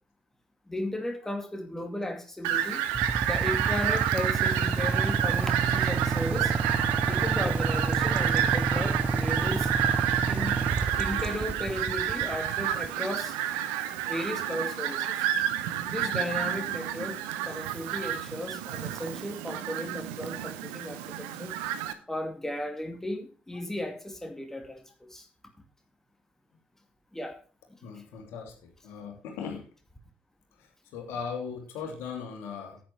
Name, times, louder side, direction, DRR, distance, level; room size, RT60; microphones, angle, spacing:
voice 1, 0.7-2.8 3.2-6.5 7.1-9.7 10.3-10.5 11.0-13.4 14.0-15.3 15.8-17.2 17.4-21.5 22.1-25.3 27.1-27.4, left 1 dB, 10° left, 4 dB, 2.3 m, -35 dB
Fowl, 2.4-21.9, right 11 dB, 70° right, 0.8 m, -30 dB
Motorcycle / Idling, 2.9-12.9, right 4 dB, 35° right, 0.9 m, -29 dB
voice 2, 27.8-28.5 28.8-29.7 30.6-32.8, left 6 dB, 65° left, 2 dB, 2.7 m, -38 dB
10.0 x 9.4 x 4.6 m, 0.38 s
figure-of-eight pair, 45°, 4 cm